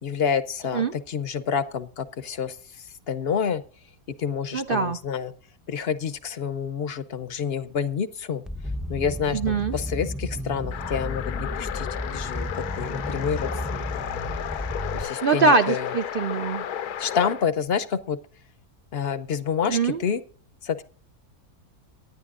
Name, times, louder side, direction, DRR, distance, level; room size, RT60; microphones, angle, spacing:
voice 1, 0.0-2.6 3.1-3.6 4.2-5.3 5.7-8.4 8.9-11.9 12.1-13.9 14.9-15.9 17.0-18.2 18.9-20.2 20.6-20.8, left 7 dB, 55° left, 13 dB, 0.7 m, -28 dB
voice 2, 4.5-5.0 9.3-9.8 15.2-16.6 19.6-20.0, right 4 dB, 60° right, 8 dB, 0.6 m, -23 dB
sound 1, 8.5-15.0, left 1 dB, ahead, 0.5 m, -33 dB
sound 2, 10.7-17.5, left 9 dB, 90° left, 1.3 m, -33 dB
24.0 x 10.5 x 2.5 m, 0.41 s
omnidirectional pair, 1.6 m